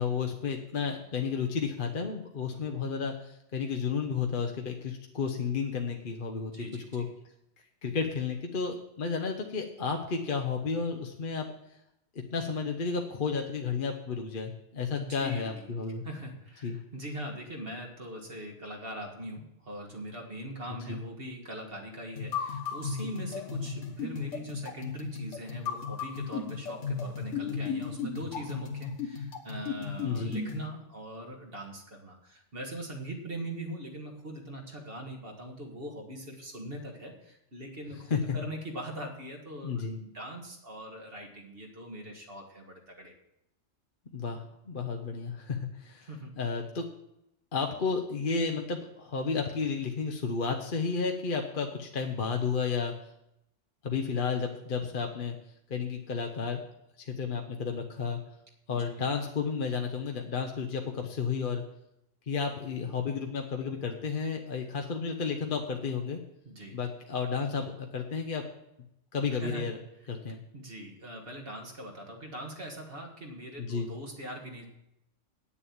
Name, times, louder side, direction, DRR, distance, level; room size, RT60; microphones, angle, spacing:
voice 1, 0.0-6.5 6.9-7.1 7.8-11.5 12.1-16.0 16.6-16.8 20.9-21.0 30.0-30.3 38.1-38.4 39.6-39.9 44.1-46.1 46.4-46.8 47.5-52.9 53.8-55.3 55.7-56.6 57.0-58.2 58.7-61.6 62.3-66.2 66.7-68.4 69.1-69.8 70.1-70.4 73.6-73.9, left 5 dB, 50° left, 3 dB, 1.0 m, -32 dB
voice 2, 6.5-6.9 14.9-15.7 16.0-43.1 46.1-46.3 58.7-58.8 66.5-66.8 69.4-69.7 70.5-74.6, right 1 dB, 50° right, 1 dB, 2.0 m, -41 dB
sound 1, 22.2-30.7, left 5 dB, 85° left, 1.6 m, -35 dB
8.8 x 7.1 x 8.6 m, 0.81 s
omnidirectional pair, 1.2 m